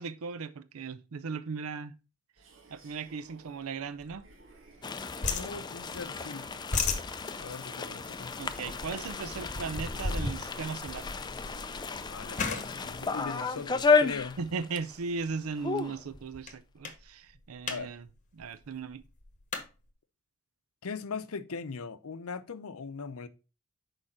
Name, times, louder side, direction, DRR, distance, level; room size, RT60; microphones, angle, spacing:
voice 1, 0.0-2.0 2.7-4.3 8.4-11.1 14.4-18.1 18.3-19.0, right 5 dB, 85° right, 0.5 m, -37 dB
sound 1, 2.4-14.0, right 4 dB, 60° right, 1.5 m, -56 dB
sound 2, 4.0-4.9 5.2-6.2 6.5-14.3 14.9-15.2 15.6-15.7 15.9-16.5 16.8-17.0 17.3-17.8 18.1-18.2 18.4-19.7, left 4 dB, 35° left, 1.1 m, -36 dB
sound 3, 4.8-14.9 15.2-15.3 15.6-16.0, left 4 dB, 20° left, 0.4 m, -32 dB
voice 2, 5.2-6.5 7.4-8.3 12.1-14.4 17.7-17.9 20.8-23.3, left 5 dB, 90° left, 0.6 m, -40 dB
6.5 x 4.8 x 4.2 m
head